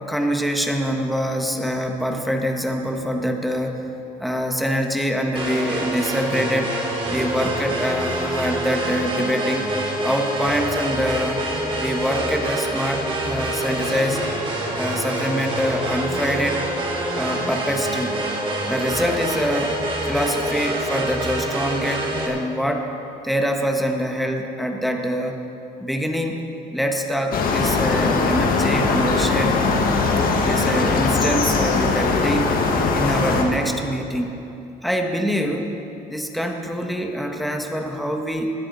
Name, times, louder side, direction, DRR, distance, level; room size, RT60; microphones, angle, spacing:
voice 1, 0.1-3.8 4.2-6.7 7.1-9.7 10.0-11.4 11.8-14.2 14.7-16.6 17.1-18.2 18.7-19.8 20.0-22.9 23.2-25.4 25.8-26.4 26.7-29.5 30.4-32.6 32.9-34.4 34.8-35.7 36.1-38.5, equal, ahead, 3 dB, 1.4 m, -24 dB
sound 1, 5.3-22.3, right 1 dB, 30° right, 3.3 m, -26 dB
sound 2, 27.3-33.4, left 4 dB, 60° left, 1.9 m, -20 dB
20.0 x 12.5 x 4.2 m, 2.8 s
cardioid pair, 110°, 17 cm